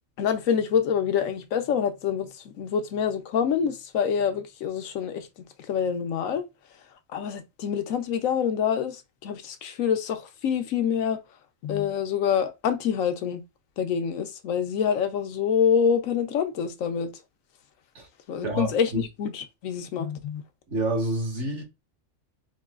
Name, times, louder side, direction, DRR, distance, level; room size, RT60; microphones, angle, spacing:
voice 1, 0.2-5.3 5.7-6.5 7.1-11.2 11.6-13.4 13.8-17.1 18.3-20.4, left 7 dB, 75° left, 1.1 m, -26 dB
voice 2, 18.4-19.0 20.7-21.6, right 2 dB, 60° right, 1.8 m, -28 dB
4.6 x 2.8 x 2.3 m
omnidirectional pair, 1.4 m